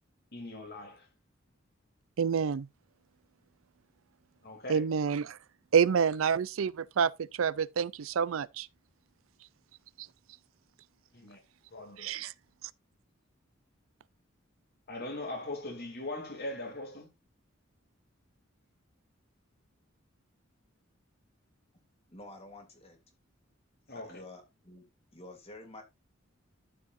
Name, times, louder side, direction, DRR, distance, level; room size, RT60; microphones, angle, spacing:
voice 1, 0.3-1.1 4.4-4.8 11.1-11.4 11.7-12.1 14.9-17.1 23.9-24.2, left 2 dB, 50° left, 2.8 m, -40 dB
voice 2, 2.2-2.7 4.7-5.4 5.7-8.7 12.0-12.3, right 7 dB, 75° right, 0.4 m, -28 dB
voice 3, 22.1-23.0 23.9-25.8, left 2 dB, 30° left, 2.8 m, -50 dB
12.0 x 7.3 x 2.6 m
head